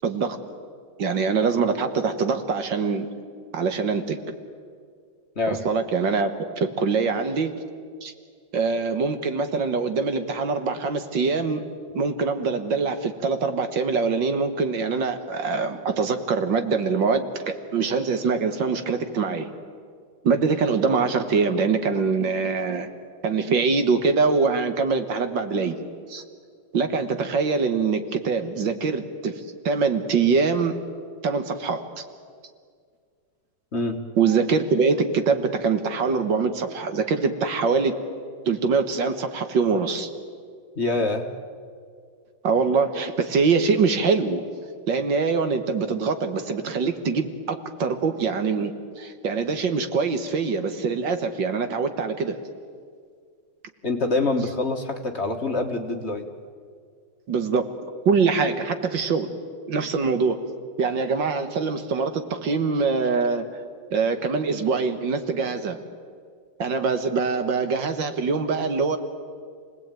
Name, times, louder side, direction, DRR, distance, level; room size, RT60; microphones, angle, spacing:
voice 1, 0.0-0.4 1.0-3.1 3.5-4.3 5.5-6.3 6.6-7.5 8.0-8.1 8.5-11.6 11.9-19.5 20.2-22.9 23.2-25.8 26.1-26.2 26.7-30.8 31.2-32.0 34.2-37.9 38.5-40.1 42.4-44.4 44.9-52.4 57.3-57.7 58.1-59.3 59.7-60.4 60.8-63.4 63.9-65.8 66.6-69.0, right 4 dB, 70° right, 8 dB, 2.1 m, -24 dB
voice 2, 40.7-41.3 53.8-56.3, left 2 dB, 35° left, 4 dB, 1.7 m, -25 dB
28.5 x 19.0 x 9.1 m, 2.1 s
omnidirectional pair, 2.1 m